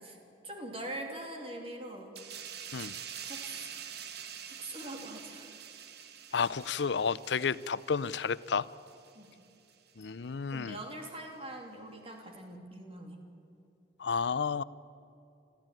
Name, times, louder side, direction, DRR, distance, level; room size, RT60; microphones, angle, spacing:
voice 1, 0.4-2.2 3.2-3.7 4.5-5.5 9.1-9.3 10.5-13.2, right 1 dB, 30° right, 2 dB, 3.0 m, -43 dB
sound 1, 2.1-9.3 9.7-9.9, right 8 dB, 60° right, 1.3 m, -46 dB
voice 2, 6.3-8.7 10.0-10.8 14.0-14.6, left 5 dB, 65° left, 18 dB, 0.5 m, -31 dB
27.5 x 14.0 x 9.1 m, 2.8 s
head